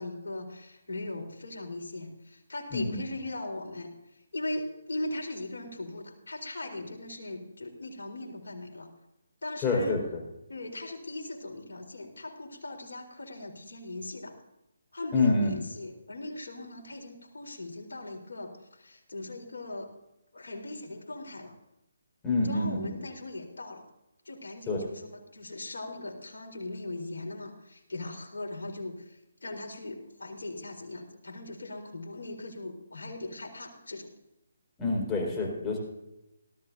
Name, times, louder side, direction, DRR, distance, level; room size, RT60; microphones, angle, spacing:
voice 1, 0.0-3.9 4.3-8.9 9.4-10.0 10.5-14.4 14.9-19.9 20.3-21.5 22.4-23.9 24.2-34.1, left 2 dB, 75° left, 1 dB, 4.1 m, -39 dB
voice 2, 9.6-10.0 15.1-15.6 22.2-22.9 24.7-24.8 34.8-35.8, left 3 dB, 15° left, -2 dB, 4.4 m, -27 dB
18.5 x 14.0 x 2.7 m, 0.89 s
figure-of-eight pair, 150°, 0 cm